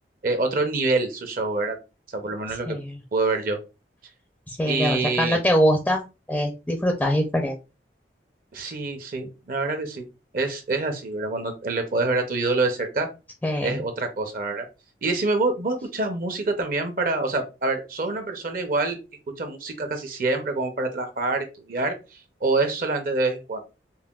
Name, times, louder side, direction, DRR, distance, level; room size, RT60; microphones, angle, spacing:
voice 1, 0.2-1.8 2.1-2.8 3.1-3.6 4.7-5.4 8.5-10.0 10.3-13.1 13.6-14.7 15.0-19.0 19.4-22.0 22.4-23.6, right 3 dB, 50° right, 6 dB, 0.6 m, -26 dB
voice 2, 2.7-3.0 4.5-6.0 6.3-7.6 13.4-13.8, equal, 10° left, 2 dB, 0.4 m, -23 dB
5.4 x 2.1 x 2.3 m, 0.29 s
head